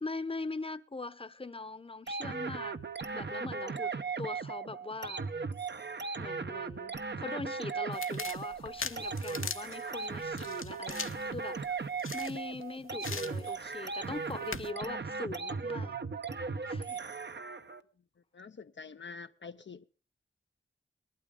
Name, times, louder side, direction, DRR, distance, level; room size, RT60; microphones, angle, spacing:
voice 1, 0.0-2.8 3.1-3.9 4.2-5.2 6.2-11.6 12.1-16.0 16.6-17.1, left 3 dB, 25° left, 0.8 m, -41 dB
sound 1, 2.1-17.8, right 4 dB, 55° right, 0.8 m, -37 dB
sound 2, 7.9-12.6 13.0-13.8 14.1-14.7, left 5 dB, 80° left, 1.1 m, -42 dB
voice 2, 18.3-19.8, left 5 dB, 60° left, 0.6 m, -46 dB
19.5 x 12.5 x 3.7 m
wide cardioid pair, 55°, 21 cm